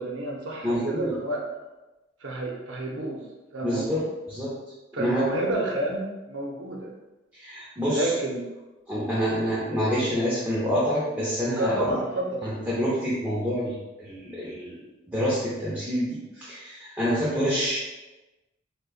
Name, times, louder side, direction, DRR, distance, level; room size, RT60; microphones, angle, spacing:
voice 1, 0.0-1.4 2.2-3.2 3.5-4.0 4.9-6.9 7.8-8.4 11.6-12.6, right 1 dB, 85° right, -1 dB, 0.6 m, -29 dB
voice 2, 0.6-1.1 3.6-4.0 4.3-4.5 4.9-5.2 7.3-8.1 8.9-11.7 12.4-14.8 15.1-17.8, equal, 10° right, -9 dB, 0.6 m, -27 dB
4.9 x 2.2 x 2.4 m, 1.1 s
head